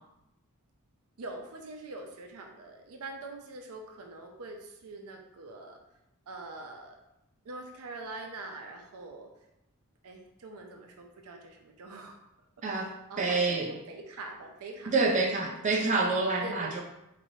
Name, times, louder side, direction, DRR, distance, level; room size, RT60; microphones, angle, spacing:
voice 1, 1.2-5.8 6.3-7.0 7.4-9.3 10.0-12.2 12.8-14.9 15.2-15.3 16.4-16.8, right 2 dB, 85° right, 3 dB, 0.5 m, -44 dB
voice 2, 13.2-13.7 14.9-16.8, right 3 dB, 35° right, -1 dB, 0.5 m, -27 dB
4.0 x 3.1 x 2.7 m, 0.87 s
head